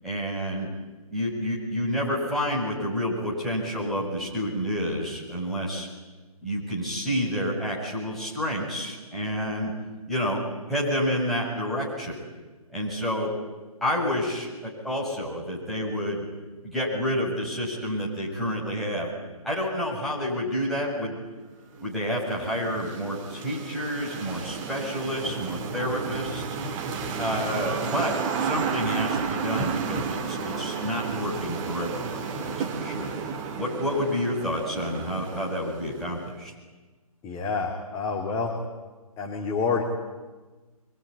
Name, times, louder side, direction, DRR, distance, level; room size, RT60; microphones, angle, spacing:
voice 1, 0.0-0.7 1.1-5.9 6.4-9.7 10.1-10.4 10.7-12.2 12.7-13.3 13.8-16.3 16.6-19.1 19.4-21.2 21.8-26.4 27.2-33.2 33.5-36.5, equal, ahead, -7 dB, 7.2 m, -29 dB
sound 1, 21.7-36.3, right 5 dB, 20° right, 1.8 m, -32 dB
voice 2, 37.2-38.6 39.2-39.8, left 5 dB, 15° left, -1 dB, 2.7 m, -28 dB
25.5 x 22.5 x 9.8 m, 1.2 s
figure-of-eight pair, 135°, 19 cm